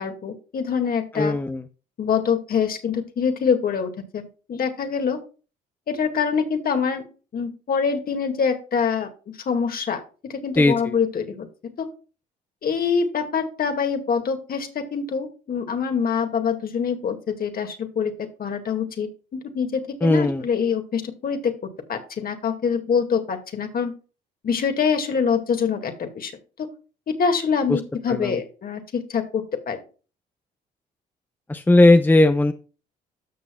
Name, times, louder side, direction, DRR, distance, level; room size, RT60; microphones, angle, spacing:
voice 1, 0.0-1.4 2.0-5.2 5.9-7.0 7.3-9.1 9.5-10.0 10.3-11.5 11.8-11.9 12.6-21.5 21.9-23.9 24.4-26.3 27.2-29.8, left 6 dB, 55° left, 6 dB, 2.1 m, -25 dB
voice 2, 1.1-1.6 10.6-10.9 20.0-20.4 27.7-27.8 28.1-28.4 31.5-32.5, left 2 dB, 10° left, 9 dB, 0.6 m, -17 dB
13.0 x 6.4 x 2.3 m, 0.34 s
supercardioid pair, 75°, 18 cm